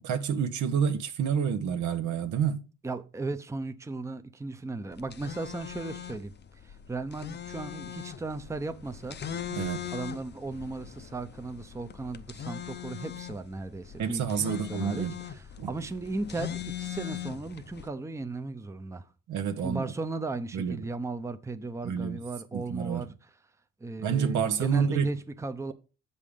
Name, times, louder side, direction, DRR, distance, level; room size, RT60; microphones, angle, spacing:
voice 1, 0.0-2.6 9.5-9.8 14.0-15.1 15.6-15.7 19.3-19.8 20.5-20.8 21.8-22.2 22.5-23.1 24.0-25.1, right 7 dB, 75° right, 1.0 m, -28 dB
voice 2, 2.8-9.2 9.9-19.1 19.6-23.1 23.8-25.7, right 3 dB, 10° right, 0.6 m, -36 dB
sound 1, 4.9-17.9, left 10 dB, 35° left, 0.6 m, -40 dB
7.3 x 5.5 x 5.1 m
cardioid pair, 90°, 30 cm